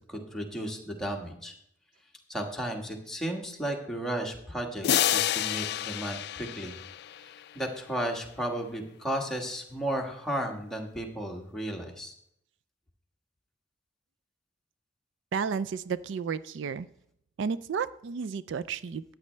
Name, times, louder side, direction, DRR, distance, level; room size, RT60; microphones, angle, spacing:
voice 1, 0.1-1.5 2.3-6.8 7.2-12.1, right 1 dB, 5° left, 0 dB, 1.4 m, -34 dB
sound 1, 4.8-7.5, left 11 dB, 60° left, 0.3 m, -29 dB
voice 2, 15.3-16.9 17.4-19.0, right 6 dB, 75° right, 16 dB, 0.4 m, -32 dB
13.5 x 9.1 x 3.3 m, 0.72 s
head